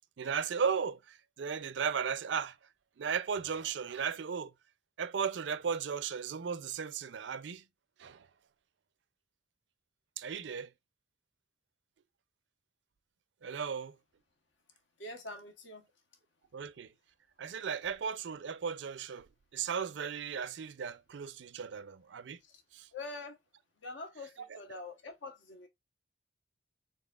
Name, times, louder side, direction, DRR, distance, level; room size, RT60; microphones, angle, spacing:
voice 1, 0.2-2.6 3.0-4.5 5.0-7.6 8.0-8.3 10.2-10.7 13.4-14.0 16.5-16.9 17.4-22.4 22.7-22.9, right 6 dB, 75° right, 0.4 m, -36 dB
voice 2, 15.0-15.9 22.4-22.6 22.9-23.4 23.8-25.7, left 2 dB, 80° left, 1.2 m, -45 dB
4.1 x 3.4 x 2.4 m
head